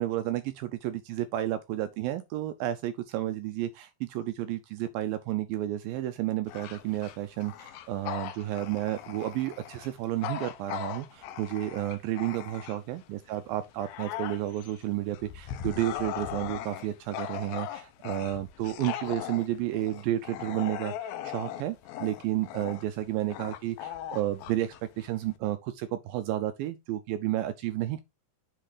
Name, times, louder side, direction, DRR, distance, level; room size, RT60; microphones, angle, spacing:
voice 1, 0.0-28.0, right 14 dB, 85° right, 2.1 m, -31 dB
Bark / Growling, 6.4-13.0 13.5-25.4, left 11 dB, 75° left, 2.3 m, -39 dB
7.8 x 3.2 x 4.9 m
omnidirectional pair, 4.6 m